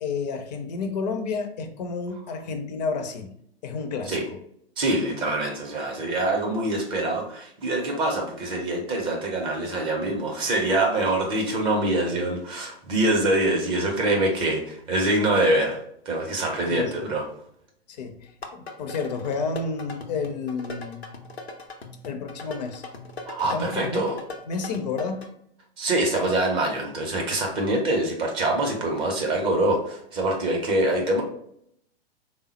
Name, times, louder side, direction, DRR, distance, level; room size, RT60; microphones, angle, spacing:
voice 1, 0.0-3.3 3.6-4.2 16.7-17.1 17.9-21.0 22.0-22.8 23.5-24.0 24.5-25.3, left 4 dB, 45° left, 0.5 m, -30 dB
voice 2, 4.8-15.8 16.1-17.2 23.3-24.2 25.8-31.2, right 1 dB, 20° right, 0.4 m, -24 dB
sound 1, 18.3-25.3, left 3 dB, 85° left, 0.7 m, -40 dB
3.4 x 2.0 x 4.0 m
figure-of-eight pair, 105°, 31 cm